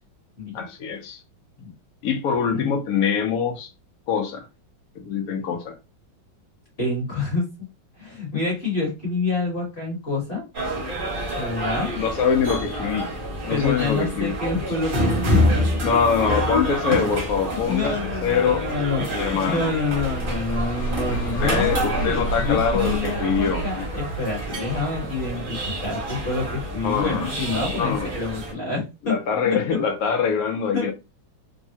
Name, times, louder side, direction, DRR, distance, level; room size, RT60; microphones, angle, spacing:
voice 1, 0.5-1.2 2.0-3.7 4.1-4.4 5.0-5.8 12.0-14.3 15.8-17.9 18.2-18.7 19.1-19.7 21.4-23.6 26.8-27.3 27.8-28.1 29.0-30.9, left 6 dB, 85° left, 0.8 m, -24 dB
voice 2, 6.8-7.4 8.0-10.5 11.4-11.9 13.5-15.4 17.5-29.1 29.4-29.6 30.7-30.9, left 3 dB, 35° left, 1.1 m, -27 dB
sound 1, 10.5-28.5, equal, 40° right, 0.8 m, -27 dB
sound 2, 19.9-26.0, right 2 dB, 55° left, 1.4 m, -31 dB
3.5 x 2.0 x 2.7 m
omnidirectional pair, 2.3 m